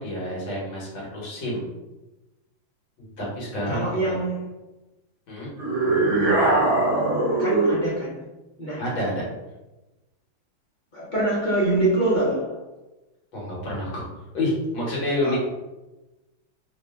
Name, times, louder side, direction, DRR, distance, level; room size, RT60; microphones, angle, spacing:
voice 1, 0.0-1.7 3.0-4.1 5.3-5.5 8.8-9.2 13.3-14.1 14.3-15.4, left 1 dB, 75° left, -5 dB, 2.1 m, -28 dB
voice 2, 3.7-4.5 7.4-8.2 8.6-8.8 10.9-12.6 15.2-15.4, right 2 dB, 60° left, -6 dB, 0.4 m, -24 dB
sound 1, 5.6-7.9, right 2 dB, 75° right, 1.6 m, -21 dB
4.1 x 2.2 x 3.6 m, 1.0 s
omnidirectional pair, 2.2 m